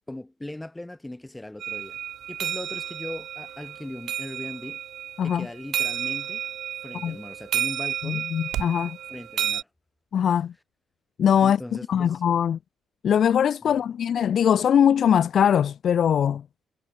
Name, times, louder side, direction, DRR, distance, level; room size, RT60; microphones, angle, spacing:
voice 1, 0.1-2.0 2.3-4.8 5.2-6.4 6.8-8.3 9.1-9.7 11.4-12.2 13.6-13.9, left 1 dB, 10° left, 3.5 m, -39 dB
sound 1, 1.6-9.6, right 10 dB, 70° right, 1.2 m, -32 dB
sound 2, 2.6-8.9, right 13 dB, 85° right, 1.6 m, -43 dB
voice 2, 8.0-9.0 10.1-10.5 11.2-11.6 11.9-12.6 13.0-16.4, left 8 dB, 60° left, 0.7 m, -21 dB
cardioid pair, 90°, 0 cm